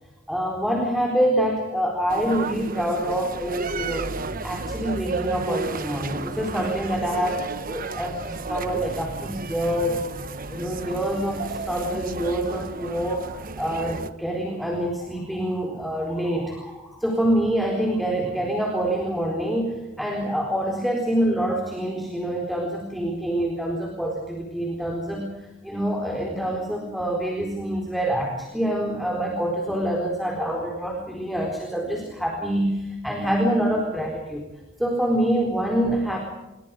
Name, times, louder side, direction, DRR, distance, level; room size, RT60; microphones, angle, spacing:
voice 1, 0.3-4.1 4.4-10.0 10.5-13.3 13.6-34.4 34.8-36.2, right 1 dB, ahead, 0 dB, 4.4 m, -26 dB
sound 1, 2.1-14.1, right 3 dB, 45° right, 1.3 m, -32 dB
29.0 x 23.0 x 5.1 m, 1.0 s
head